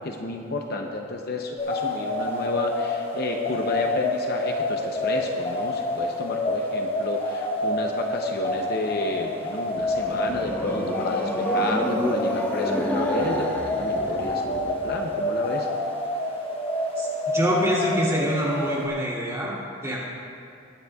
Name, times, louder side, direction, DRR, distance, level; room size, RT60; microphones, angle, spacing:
voice 1, 0.0-15.7, left 2 dB, 50° left, 2 dB, 0.7 m, -31 dB
sound 1, 1.6-18.9, left 1 dB, 25° left, 1.1 m, -28 dB
sound 2, 9.8-15.0, left 1 dB, 10° left, 1.0 m, -30 dB
voice 2, 17.0-20.0, equal, 15° right, -6 dB, 2.7 m, -26 dB
21.0 x 9.8 x 2.3 m, 2.5 s
head